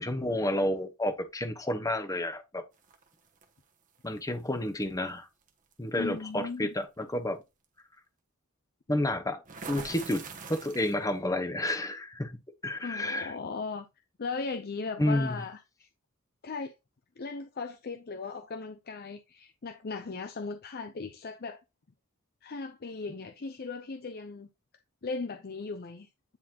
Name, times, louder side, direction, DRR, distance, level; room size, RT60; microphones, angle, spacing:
voice 1, 0.0-2.6 4.0-5.3 5.8-7.4 8.9-9.4 9.7-10.2 10.5-12.3 12.6-13.3 15.0-15.4, left 1 dB, 15° left, 1.0 m, -30 dB
sound 1, 2.8-3.4 4.8-5.0 5.5-5.7 9.4-11.1, right 4 dB, 40° right, 1.2 m, -43 dB
voice 2, 6.0-6.7 12.8-13.9 14.2-15.9 16.4-16.7 17.2-21.6 22.4-24.5 25.0-26.1, left 4 dB, 45° left, 0.6 m, -37 dB
9.7 x 4.2 x 2.9 m
head